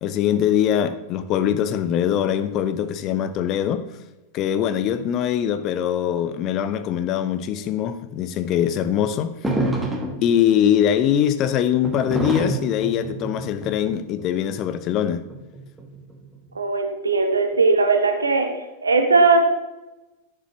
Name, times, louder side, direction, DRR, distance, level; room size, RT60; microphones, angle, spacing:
voice 1, 0.0-3.8 4.3-9.3 10.2-15.2, left 9 dB, 35° left, 0.6 m, -22 dB
sound 1, 9.4-10.4 11.8-14.3 15.3-16.3, right 1 dB, 10° right, 1.3 m, -26 dB
voice 2, 16.5-18.5 18.8-19.4, right 3 dB, 75° right, 1.1 m, -18 dB
11.0 x 6.8 x 3.2 m
figure-of-eight pair, 90°, 0 cm